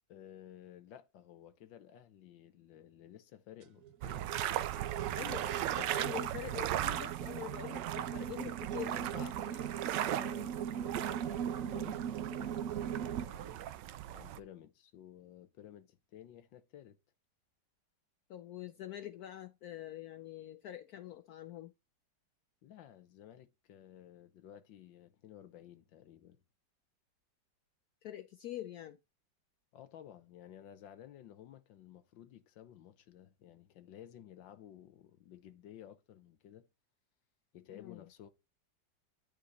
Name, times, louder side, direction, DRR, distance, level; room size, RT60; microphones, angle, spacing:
voice 1, 0.1-4.3 10.0-13.6 14.1-17.0 22.6-26.4 29.7-36.7 37.5-38.3, left 10 dB, 90° left, 1.7 m, -54 dB
sound 1, 3.6-13.2, right 9 dB, 60° right, 1.0 m, -40 dB
sound 2, 4.0-14.4, right 12 dB, 80° right, 1.3 m, -38 dB
voice 2, 5.1-9.7 11.6-12.0 18.3-21.7 28.0-29.0 37.7-38.1, left 12 dB, 70° left, 0.9 m, -45 dB
10.5 x 3.8 x 3.9 m
omnidirectional pair, 2.0 m